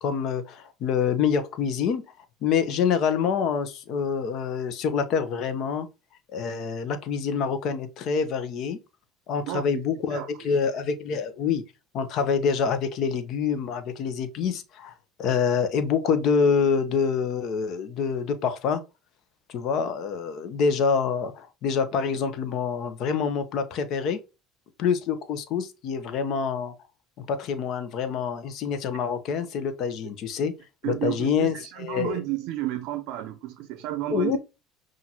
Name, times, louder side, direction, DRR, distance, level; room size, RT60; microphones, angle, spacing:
voice 1, 0.0-2.0 2.4-5.9 6.3-8.8 9.3-11.6 11.9-14.9 15.2-18.8 19.5-24.2 24.8-26.7 27.2-30.5 30.8-32.2 34.1-34.4, left 6 dB, 60° left, 0.8 m, -26 dB
voice 2, 9.5-9.8 10.1-10.6 30.8-34.4, right 14 dB, 70° right, 0.5 m, -32 dB
5.7 x 2.5 x 2.9 m
supercardioid pair, 105°, 0 cm